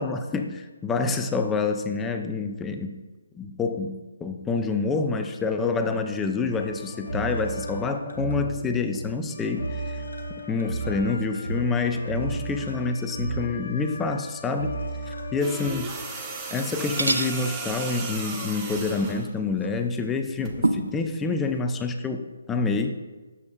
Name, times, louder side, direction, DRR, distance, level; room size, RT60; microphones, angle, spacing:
voice 1, 0.0-3.0 3.3-10.0 10.5-14.8 15.1-15.9 16.5-22.9, left 4 dB, 10° left, 6 dB, 0.4 m, -27 dB
sound 1, 6.5-15.7, right 2 dB, 80° left, 1.1 m, -34 dB
sound 2, 15.4-19.3 20.4-20.6, right 3 dB, 15° right, 0.8 m, -35 dB
sound 3, 16.4-16.7 17.0-17.4 19.6-19.7 20.6-21.0, right 2 dB, 85° right, 0.5 m, -25 dB
7.0 x 6.9 x 2.3 m, 1.3 s
figure-of-eight pair, 145°, 0 cm